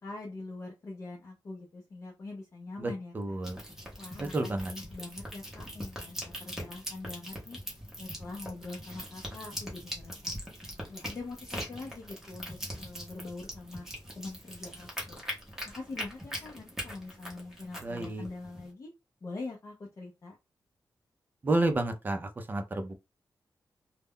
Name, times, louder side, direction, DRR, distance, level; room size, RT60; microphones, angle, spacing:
voice 1, 0.0-3.4 3.7-7.6 8.0-10.3 10.9-13.9 14.2-18.9 19.2-20.4, left 3 dB, 40° left, 0.5 m, -44 dB
voice 2, 2.8-3.6 4.2-4.7 17.8-18.2 21.4-22.9, right 2 dB, 25° right, 0.4 m, -31 dB
sound 1, 3.4-18.7, equal, 5° right, 0.8 m, -41 dB
2.2 x 2.1 x 3.5 m
wide cardioid pair, 175°, 7 cm